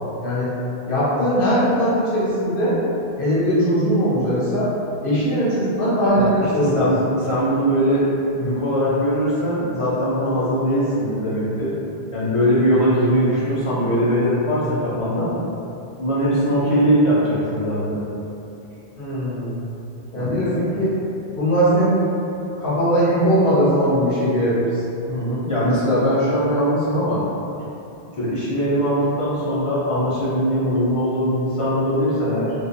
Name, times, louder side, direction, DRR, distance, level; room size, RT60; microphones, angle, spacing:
voice 1, 0.9-2.7 3.2-4.7 5.0-6.9 19.0-19.7 20.1-20.9 21.3-22.1 22.6-24.7, equal, 60° left, -11 dB, 1.1 m, -20 dB
voice 2, 6.1-8.1 8.3-11.7 12.1-15.3 16.0-18.1 20.1-20.5 25.1-27.2 28.2-32.5, equal, 35° left, -10 dB, 0.7 m, -21 dB
3.3 x 2.5 x 2.6 m, 2.8 s
omnidirectional pair, 1.0 m